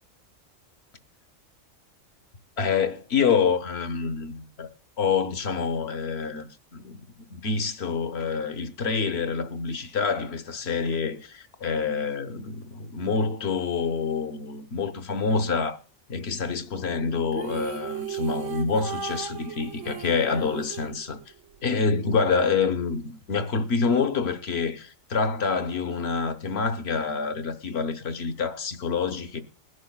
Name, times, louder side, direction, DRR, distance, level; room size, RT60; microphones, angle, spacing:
voice 1, 2.6-4.7 5.0-15.8 16.1-21.2 21.6-29.4, left 5 dB, 55° left, 1.0 m, -27 dB
sound 1, 17.3-21.6, right 8 dB, 65° right, 1.0 m, -35 dB
20.0 x 11.0 x 2.2 m
omnidirectional pair, 1.4 m